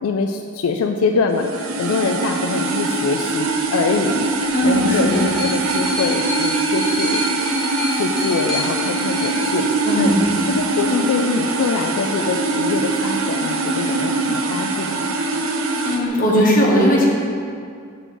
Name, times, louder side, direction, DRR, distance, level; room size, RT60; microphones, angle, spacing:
voice 1, 0.0-7.2 7.9-9.7 10.0-10.1 10.5-15.1, left 4 dB, 85° left, 4 dB, 0.4 m, -24 dB
sound 1, 1.3-16.0, right 3 dB, 70° right, 0.6 m, -22 dB
sound 2, 4.4-10.4 11.3-11.4, left 2 dB, ahead, 1.3 m, -29 dB
voice 2, 4.5-5.3 9.8-10.3 15.8-17.1, equal, 40° left, -4 dB, 1.3 m, -17 dB
6.7 x 3.9 x 6.0 m, 2.3 s
head